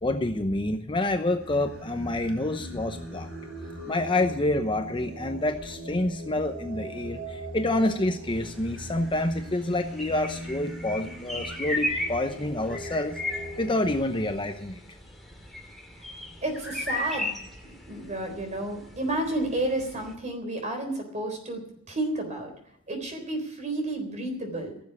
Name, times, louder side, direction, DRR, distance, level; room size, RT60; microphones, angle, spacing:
voice 1, 0.0-3.3 3.9-13.2 13.6-14.8, left 1 dB, 25° left, 6 dB, 0.8 m, -28 dB
Singing, 1.4-14.0, right 1 dB, 75° right, 4.9 m, -40 dB
sound 1, 8.3-20.1, left 1 dB, ahead, 2.5 m, -37 dB
voice 2, 16.4-17.3 17.9-21.6 21.9-22.5 22.9-24.7, right 1 dB, 35° right, 4 dB, 3.8 m, -31 dB
16.0 x 7.4 x 9.8 m, 0.75 s
head